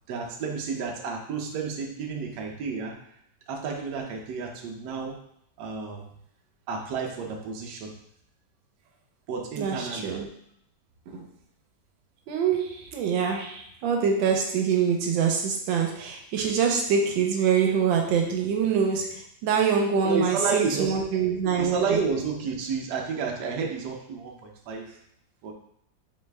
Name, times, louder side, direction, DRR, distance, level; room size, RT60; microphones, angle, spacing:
voice 1, 0.1-3.0 3.5-5.2 5.6-6.1 6.7-7.9 9.3-10.1 11.1-11.3 20.0-21.1 21.6-25.0 25.4-25.5, right 5 dB, 70° right, 1 dB, 1.2 m, -31 dB
voice 2, 9.6-10.3 12.3-22.0, right 6 dB, 90° right, 1 dB, 1.4 m, -25 dB
4.0 x 3.1 x 3.3 m, 0.72 s
omnidirectional pair, 2.0 m